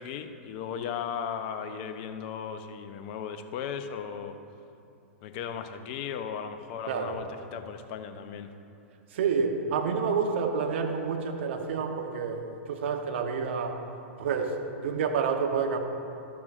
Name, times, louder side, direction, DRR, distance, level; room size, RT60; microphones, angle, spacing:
voice 1, 0.0-4.4 5.2-8.5, left 7 dB, 45° left, 8 dB, 0.7 m, -36 dB
voice 2, 6.9-7.2 9.1-13.8 14.2-15.8, right 5 dB, 60° right, 4 dB, 1.0 m, -29 dB
12.5 x 12.0 x 2.5 m, 2.7 s
figure-of-eight pair, 105°, 7 cm